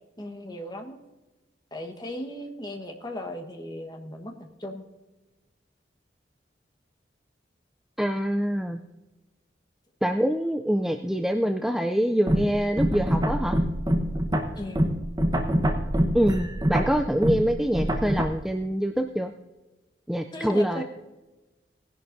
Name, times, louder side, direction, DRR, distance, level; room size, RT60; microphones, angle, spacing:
voice 1, 0.2-1.0 1.7-4.9 14.5-14.9 20.3-20.8, left 1 dB, 20° left, 4 dB, 1.2 m, -37 dB
voice 2, 8.0-8.8 10.0-13.6 16.1-19.3 20.1-20.8, equal, ahead, 6 dB, 0.3 m, -25 dB
sound 1, 12.3-18.2, equal, 20° right, 1.0 m, -25 dB
19.0 x 11.0 x 2.6 m, 1.1 s
head